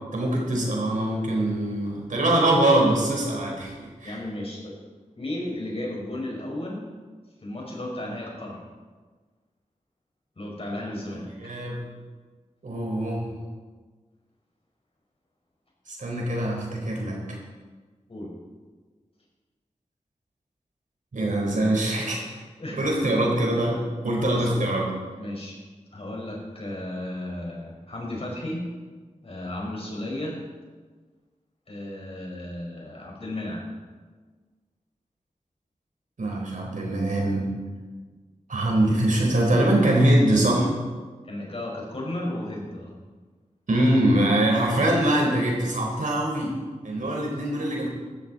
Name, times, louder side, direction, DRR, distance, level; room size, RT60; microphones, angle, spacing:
voice 1, 0.1-3.7 4.0-4.2 11.1-11.8 12.6-13.2 15.9-17.4 21.1-22.2 22.7-24.9 36.2-37.5 38.5-40.7 43.7-46.5 46.8-47.9, right 1 dB, 75° right, -1 dB, 4.2 m, -23 dB
voice 2, 4.0-4.8 5.2-6.8 7.4-8.6 10.3-11.3 18.1-18.3 22.6-22.9 23.6-23.7 24.2-24.6 25.2-25.5 25.9-28.6 29.2-30.4 31.7-33.6 41.2-43.0, left 1 dB, 45° left, -2 dB, 5.2 m, -34 dB
16.0 x 13.5 x 4.2 m, 1.4 s
wide cardioid pair, 65°, 13 cm